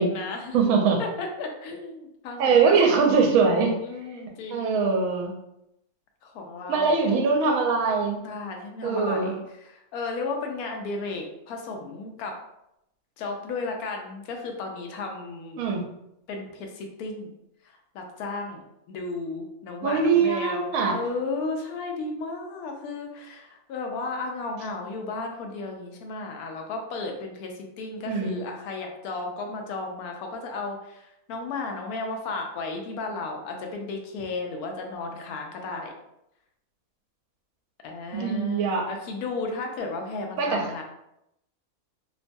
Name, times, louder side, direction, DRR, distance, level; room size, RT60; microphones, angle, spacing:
voice 1, 0.0-0.6 1.0-3.0 3.8-4.8 6.2-7.2 8.2-12.4 13.2-15.6 16.3-17.3 17.9-35.9 37.8-40.8, left 3 dB, 80° left, 3 dB, 1.1 m, -34 dB
voice 2, 0.5-1.0 2.4-3.8 4.5-5.3 6.7-8.2 8.8-9.3 15.6-15.8 19.8-21.0 28.1-28.3 38.1-38.9 40.4-40.7, right 5 dB, 75° right, 2 dB, 1.0 m, -22 dB
2.9 x 2.2 x 2.6 m, 0.83 s
omnidirectional pair, 1.6 m